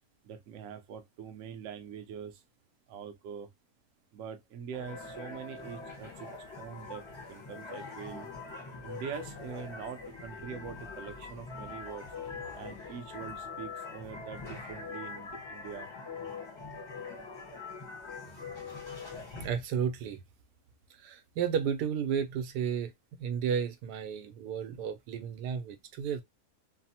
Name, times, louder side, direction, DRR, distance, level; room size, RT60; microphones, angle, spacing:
voice 1, 0.2-2.4 2.9-3.5 4.1-6.3 6.6-7.0 7.3-8.3 8.8-12.1 12.5-15.9, right 7 dB, 65° right, 0.9 m, -43 dB
sound 1, 4.7-19.5, left 4 dB, 25° left, 0.6 m, -43 dB
voice 2, 19.4-20.2 21.0-26.2, right 7 dB, 90° right, 1.2 m, -33 dB
3.3 x 2.0 x 2.7 m
omnidirectional pair, 1.7 m